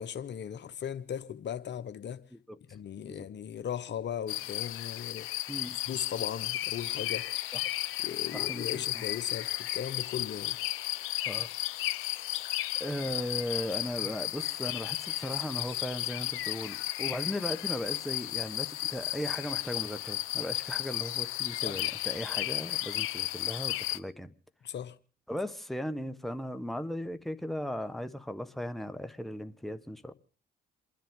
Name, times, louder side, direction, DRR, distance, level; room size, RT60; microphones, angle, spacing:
voice 1, 0.0-2.2 2.7-5.5 5.9-7.3 8.0-10.6 21.6-21.8 24.6-25.0, left 9 dB, 60° left, 1.0 m, -37 dB
sound 1, 4.3-24.0, left 14 dB, 75° left, 0.7 m, -34 dB
voice 2, 5.5-5.8 7.5-7.6 8.3-9.0 11.2-11.5 12.8-24.3 25.3-30.1, equal, ahead, 1.2 m, -37 dB
28.5 x 10.5 x 3.7 m
hypercardioid pair, 50°, 21 cm